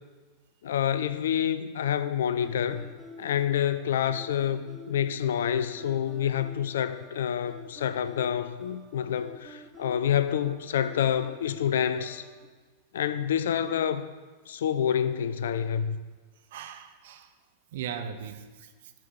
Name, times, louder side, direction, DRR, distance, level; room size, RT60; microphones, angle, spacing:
voice 1, 0.6-2.9 3.2-12.2 12.9-14.1 14.5-16.0, left 9 dB, 60° left, 12 dB, 0.4 m, -28 dB
sound 1, 2.4-12.5, left 1 dB, 10° right, 1.0 m, -49 dB
voice 2, 16.5-17.3 17.7-18.9, right 8 dB, 55° right, 8 dB, 0.7 m, -39 dB
7.6 x 5.3 x 7.5 m, 1.3 s
figure-of-eight pair, 90°, 0 cm